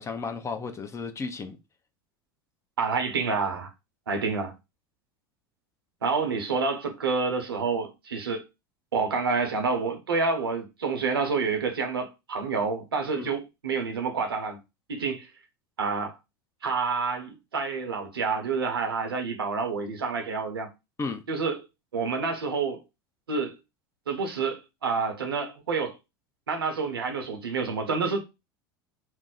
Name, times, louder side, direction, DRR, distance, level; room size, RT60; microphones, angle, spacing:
voice 1, 0.0-1.6 13.1-13.4 21.0-21.2, left 4 dB, 25° left, 0.6 m, -34 dB
voice 2, 2.8-3.7 4.1-4.5 6.0-8.4 8.9-14.6 14.9-15.3 15.8-16.2 16.6-20.7 21.3-21.6 21.9-22.8 23.3-23.6 24.1-26.0 26.5-28.2, right 4 dB, 90° right, 0.8 m, -28 dB
2.6 x 2.0 x 3.8 m
hypercardioid pair, 85°, 12 cm